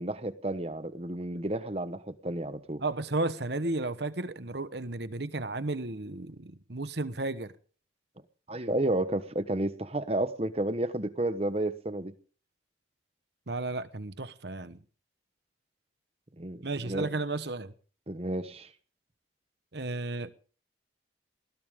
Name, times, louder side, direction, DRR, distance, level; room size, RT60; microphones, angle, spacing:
voice 1, 0.0-2.8 8.5-12.1 16.4-17.1 18.1-18.7, right 1 dB, 30° right, 1.1 m, -31 dB
voice 2, 2.8-7.5 13.5-14.8 16.6-17.7 19.7-20.3, right 2 dB, 60° right, 1.1 m, -33 dB
20.0 x 17.5 x 3.7 m
head